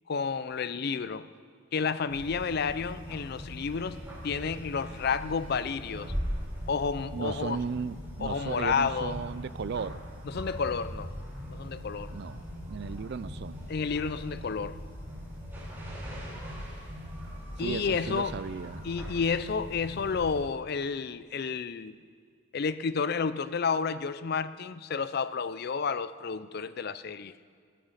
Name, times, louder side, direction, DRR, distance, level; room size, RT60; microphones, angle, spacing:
voice 1, 0.1-1.3 1.7-6.1 6.7-7.6 8.2-9.1 10.3-11.1 11.5-12.1 13.7-14.7 17.6-18.3 18.8-22.0 22.5-27.3, left 5 dB, 50° left, 0.4 m, -31 dB
sound 1, 2.1-20.4, equal, 10° right, 4.9 m, -40 dB
voice 2, 7.1-10.0 12.1-13.6 17.6-18.8, right 5 dB, 55° right, 0.4 m, -36 dB
15.0 x 13.0 x 5.7 m
head